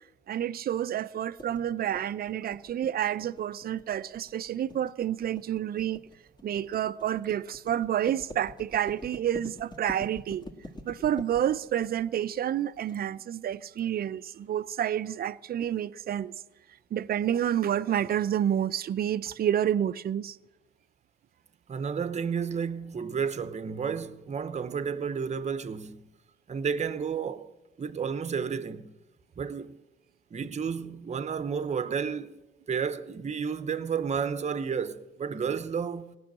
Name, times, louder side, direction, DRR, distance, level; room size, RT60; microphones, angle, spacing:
voice 1, 0.3-6.0 6.4-10.5 10.9-16.3 16.9-20.4, right 10 dB, 50° right, 0.5 m, -29 dB
sound 1, 1.4-12.9, left 1 dB, 20° left, 1.7 m, -45 dB
voice 2, 21.7-26.1 26.5-27.5 27.8-28.9 29.4-29.8 30.3-32.3 32.7-36.2, right 6 dB, 35° right, 0.8 m, -31 dB
18.0 x 6.3 x 8.7 m
cardioid pair, 90°, 20 cm